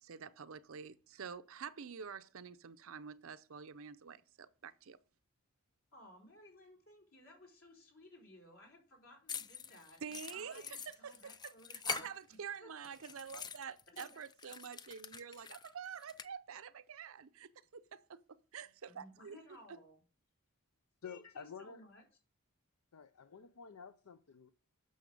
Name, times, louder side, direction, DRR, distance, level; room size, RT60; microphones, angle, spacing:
voice 1, 0.0-5.0 10.0-11.5 11.9-19.4 19.7-19.8, right 7 dB, 65° right, 0.6 m, -48 dB
voice 2, 5.9-12.1 12.6-12.7 13.9-14.2 18.9-20.0 21.0-22.0, left 1 dB, 65° left, 4.2 m, -59 dB
sound 1, 9.3-12.6 12.8-16.3, left 6 dB, 20° left, 0.3 m, -45 dB
voice 3, 21.0-21.8 22.9-24.5, left 6 dB, 80° left, 0.6 m, -50 dB
9.2 x 6.4 x 5.3 m
head